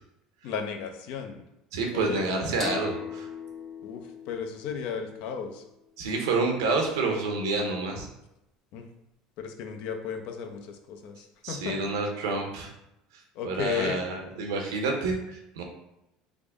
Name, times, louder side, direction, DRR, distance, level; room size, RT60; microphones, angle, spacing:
voice 1, 0.4-1.4 1.9-2.3 3.8-5.6 8.7-8.9 9.4-11.8 13.3-14.0, left 6 dB, 70° left, 5 dB, 0.5 m, -34 dB
voice 2, 1.7-3.3 6.0-8.1 11.4-12.7 13.4-15.6, right 3 dB, 90° right, 2 dB, 0.7 m, -28 dB
sound 1, 2.6-6.0, left 4 dB, 20° left, 0.9 m, -40 dB
3.5 x 2.0 x 3.5 m, 0.87 s
supercardioid pair, 95°, 2 cm